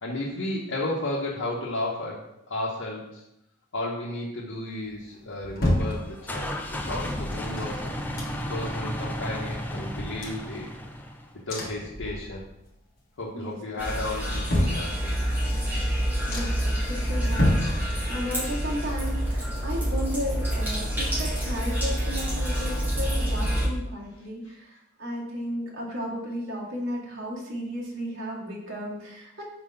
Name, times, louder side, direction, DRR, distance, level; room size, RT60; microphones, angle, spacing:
voice 1, 0.0-3.2 3.7-10.7 11.5-12.4 13.2-15.2, left 2 dB, 90° left, -6 dB, 1.0 m, -33 dB
sound 1, 4.9-6.6 7.3-8.7 9.1-9.2 9.4-11.1 11.5-12.7 13.0-13.5 13.9-15.4 15.9-16.0 16.3-16.8 17.2-18.4 18.7-20.5 20.8-20.9, left 1 dB, 50° left, 1.4 m, -31 dB
sound 2, 5.8-11.4, equal, 10° left, 0.4 m, -33 dB
voice 2, 13.3-13.9 14.3-14.4 16.3-29.4, equal, 85° right, -4 dB, 1.8 m, -34 dB
sound 3, 13.8-23.7, equal, 10° right, 1.6 m, -27 dB
4.4 x 4.0 x 5.5 m, 0.85 s
head